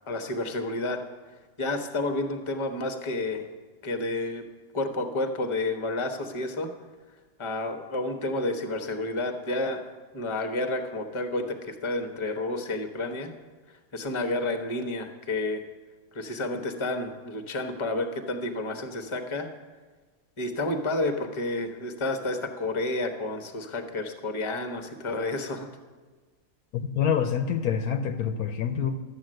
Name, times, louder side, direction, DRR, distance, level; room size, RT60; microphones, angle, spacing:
voice 1, 0.1-1.0 1.6-3.5 3.8-4.4 4.7-6.7 7.4-9.8 10.1-13.3 13.9-15.6 16.1-19.5 20.4-25.7, left 2 dB, 20° left, 6 dB, 0.9 m, -30 dB
voice 2, 26.7-29.0, left 7 dB, 70° left, 8 dB, 1.1 m, -26 dB
12.5 x 8.4 x 7.7 m, 1.4 s
omnidirectional pair, 1.7 m